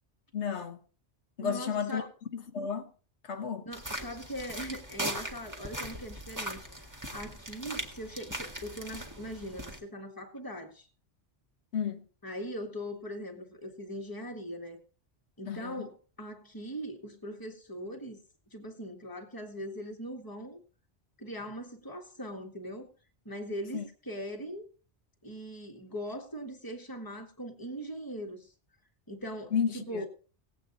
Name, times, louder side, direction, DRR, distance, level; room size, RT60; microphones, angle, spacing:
voice 1, 0.3-0.8 1.4-2.1 2.3-2.9 3.2-3.7 11.7-12.0 15.5-15.9 23.7-23.8 29.5-30.1, left 7 dB, 80° left, 1.3 m, -32 dB
voice 2, 1.4-2.1 3.6-6.7 7.1-10.9 12.2-14.8 15.4-18.2 18.5-20.6 21.2-22.9 23.3-24.7 25.2-28.5 29.1-30.1, equal, 20° left, 1.7 m, -40 dB
sound 1, 3.7-9.8, right 1 dB, 15° right, 1.8 m, -39 dB
18.0 x 8.4 x 4.0 m
omnidirectional pair, 1.1 m